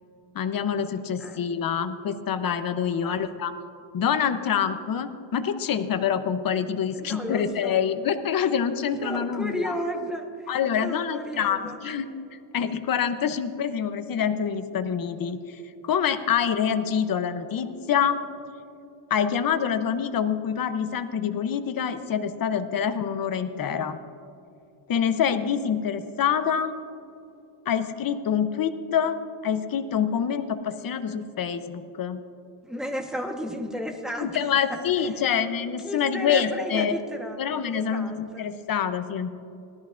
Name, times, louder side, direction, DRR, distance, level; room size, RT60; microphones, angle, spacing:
voice 1, 0.3-3.5 3.9-9.7 10.5-18.2 19.1-24.0 24.9-26.7 27.7-29.2 29.4-32.2 34.2-37.0 37.4-39.3, left 8 dB, 45° left, 10 dB, 0.8 m, -26 dB
voice 2, 0.9-1.4 2.9-3.3 6.9-7.8 9.0-11.8 32.6-34.4 34.7-35.2 35.8-38.5, equal, ahead, 2 dB, 1.2 m, -34 dB
18.0 x 13.5 x 2.5 m, 2.7 s
cardioid pair, 135°, 47 cm